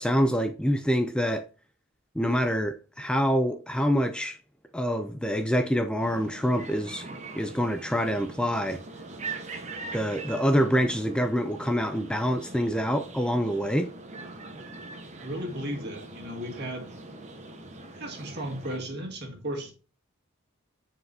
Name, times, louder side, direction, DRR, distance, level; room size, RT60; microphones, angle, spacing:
voice 1, 0.0-1.4 2.2-4.4 4.7-7.1 7.4-8.8 9.9-13.9, equal, 5° left, 0.3 m, -26 dB
sound 1, 6.0-18.8, right 3 dB, 30° right, 1.1 m, -42 dB
voice 2, 15.2-16.9 17.9-19.7, right 1 dB, 50° right, 1.9 m, -35 dB
9.6 x 4.7 x 2.7 m
head